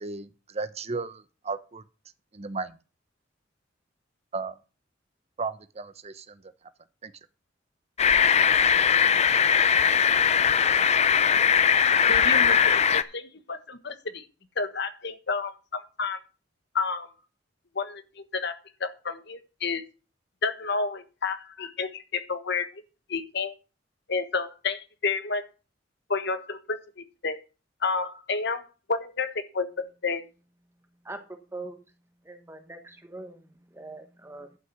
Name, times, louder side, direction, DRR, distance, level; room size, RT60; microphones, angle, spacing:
voice 1, 0.0-1.8 2.3-2.7 4.3-4.6 5.4-6.4 7.0-7.1, right 4 dB, 35° right, 0.8 m, -34 dB
sound 1, 8.0-13.0, left 7 dB, 35° left, 0.6 m, -20 dB
voice 2, 12.1-14.2 14.6-16.2 16.7-17.1 17.7-18.0 18.3-18.5 18.8-19.8 20.4-22.7 23.1-23.5 24.1-25.4 26.1-27.4 27.8-28.6 28.9-30.2, left 4 dB, 65° left, 1.4 m, -30 dB
voice 3, 32.2-33.4 33.7-34.5, right 2 dB, 15° right, 1.3 m, -41 dB
11.5 x 6.0 x 6.1 m
head